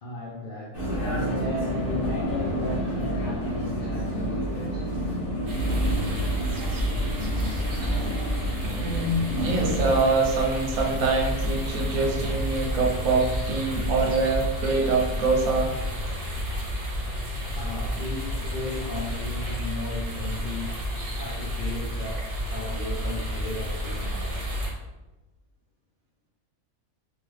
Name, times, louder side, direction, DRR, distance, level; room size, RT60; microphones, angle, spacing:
voice 1, 0.0-5.2 17.6-20.7 21.2-24.4, left 2 dB, 75° left, -4 dB, 0.4 m, -35 dB
Vehicle, 0.7-10.0, equal, 45° left, 1.0 m, -30 dB
sound 1, 5.4-24.7, equal, 45° right, 0.8 m, -30 dB
voice 2, 8.6-15.8, right 3 dB, 75° right, 1 dB, 1.0 m, -25 dB
3.1 x 2.3 x 3.1 m, 1.1 s
omnidirectional pair, 1.6 m